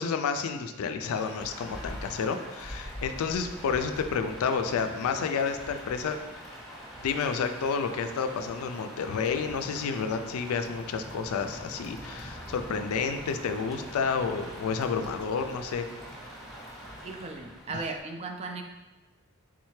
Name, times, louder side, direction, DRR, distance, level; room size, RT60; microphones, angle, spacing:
voice 1, 0.0-6.2 7.0-15.9 17.7-17.8, left 5 dB, 80° left, 8 dB, 0.3 m, -30 dB
Rain, 1.0-18.0, equal, ahead, 0.7 m, -43 dB
voice 2, 17.0-18.6, right 3 dB, 30° right, 4 dB, 0.3 m, -36 dB
3.7 x 3.2 x 3.1 m, 1.1 s
head